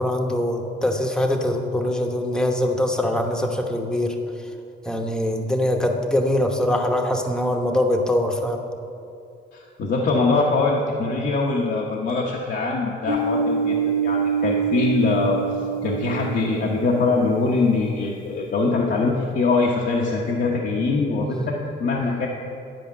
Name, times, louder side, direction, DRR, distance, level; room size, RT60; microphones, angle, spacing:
voice 1, 0.0-4.2 4.8-8.6 21.3-21.5, left 1 dB, 5° left, 2 dB, 1.0 m, -23 dB
voice 2, 9.5-13.8 14.0-15.4 15.8-22.3, left 3 dB, 60° left, -3 dB, 1.1 m, -22 dB
sound 1, 13.1-17.3, right 6 dB, 45° right, 1.0 m, -25 dB
10.5 x 5.0 x 7.4 m, 2.6 s
cardioid pair, 90°, 20 cm